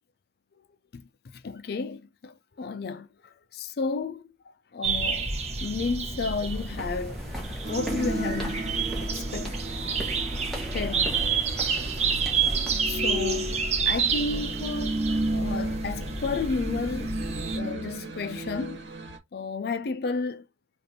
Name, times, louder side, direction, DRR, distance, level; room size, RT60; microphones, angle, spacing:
voice 1, 0.9-4.3 4.7-5.3 5.6-7.3 7.7-8.7 9.0-9.6 10.7-11.2 12.8-15.0 15.3-17.2 17.5-18.9 19.3-20.4, left 4 dB, 60° left, 0.4 m, -32 dB
sound 1, 4.8-17.6, right 5 dB, 40° right, 0.8 m, -29 dB
sound 2, 6.5-13.0, equal, ahead, 1.3 m, -38 dB
sound 3, 7.6-19.2, right 1 dB, 90° right, 1.2 m, -34 dB
5.1 x 2.5 x 2.7 m
head